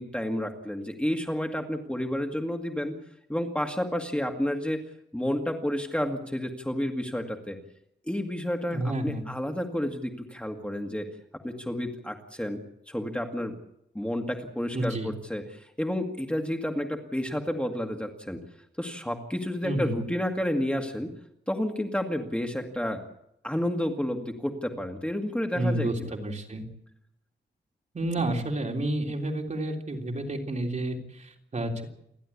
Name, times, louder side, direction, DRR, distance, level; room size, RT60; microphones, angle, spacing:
voice 1, 0.0-3.0 3.3-4.8 5.1-7.6 8.0-11.1 11.4-13.5 13.9-18.4 18.8-21.1 21.5-23.0 23.4-26.1, left 1 dB, 5° left, 3 dB, 2.1 m, -30 dB
voice 2, 8.7-9.2 14.7-15.1 19.6-20.0 25.5-26.6 27.9-31.8, right 1 dB, 40° right, 2 dB, 3.5 m, -30 dB
29.0 x 12.0 x 8.5 m, 0.77 s
wide cardioid pair, 130°, 19 cm